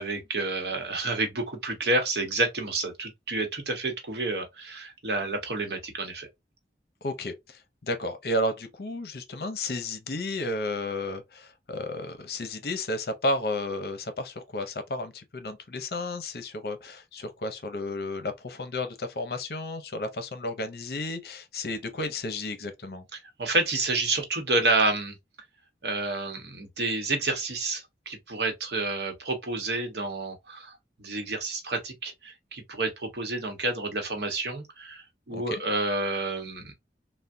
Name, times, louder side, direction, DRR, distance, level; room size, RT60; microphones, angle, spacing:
voice 1, 0.0-6.3 23.4-25.2 25.8-36.7, right 2 dB, 75° right, 0.9 m, -29 dB
voice 2, 7.0-23.0 35.3-35.6, left 1 dB, 60° left, 0.7 m, -32 dB
3.4 x 2.2 x 2.6 m
head